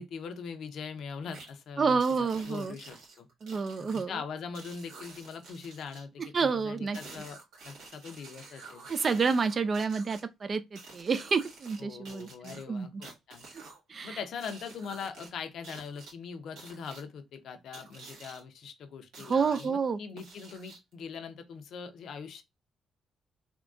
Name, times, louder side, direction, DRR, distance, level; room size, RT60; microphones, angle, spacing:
voice 1, 0.0-3.3 3.8-7.4 7.6-8.9 11.8-13.4 14.0-22.4, left 6 dB, 70° left, 0.6 m, -42 dB
sound 1, 1.3-1.5 2.0-4.0 4.5-6.0 6.9-10.2 10.8-11.8 12.1-13.8 14.4-15.3 15.6-16.1 16.6-17.0 17.7-18.4 19.1-19.7 20.2-20.9, right 3 dB, 85° right, 1.6 m, -49 dB
voice 2, 1.8-2.7 3.4-4.1 6.2-7.0 8.9-13.0 13.9-14.2 19.2-20.0, right 5 dB, 40° right, 0.3 m, -29 dB
3.5 x 2.2 x 2.4 m
cardioid pair, 90°, 0 cm